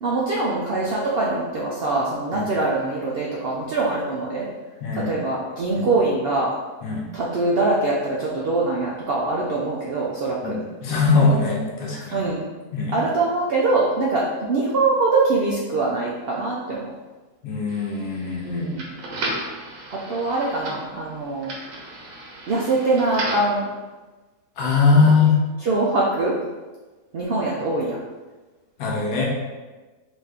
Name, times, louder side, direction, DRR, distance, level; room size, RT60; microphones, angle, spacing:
voice 1, 0.0-4.5 5.1-6.5 7.1-10.5 12.0-12.5 12.9-16.9 18.4-18.9 19.9-21.5 22.5-23.7 24.9-25.2 25.6-26.3 27.1-28.0, right 3 dB, 80° right, -4 dB, 0.5 m, -23 dB
voice 2, 4.8-5.1 5.7-5.9 6.8-7.0 10.4-12.2 12.7-13.0 17.4-18.7 24.6-25.4 28.8-29.3, left 4 dB, 80° left, -2 dB, 1.3 m, -21 dB
sound 1, 17.7-23.6, right 1 dB, 60° right, 1.1 m, -34 dB
4.0 x 2.6 x 3.4 m, 1.2 s
omnidirectional pair, 1.7 m